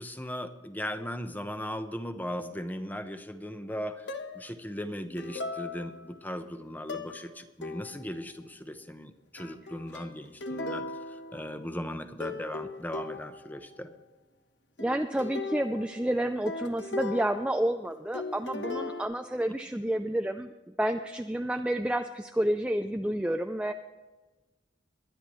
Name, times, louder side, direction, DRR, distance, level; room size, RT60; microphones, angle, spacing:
voice 1, 0.0-4.1 4.3-13.9, equal, 10° left, 8 dB, 0.9 m, -38 dB
sound 1, 4.1-4.6 5.2-6.2 6.9-7.3 7.6-8.2 9.4-11.9 12.2-13.6 14.8-17.9 18.1-19.0, left 3 dB, 75° left, 1.2 m, -38 dB
voice 2, 14.8-20.5 20.8-23.7, right 1 dB, 5° right, 6 dB, 0.4 m, -30 dB
23.0 x 10.0 x 3.1 m, 1.2 s
head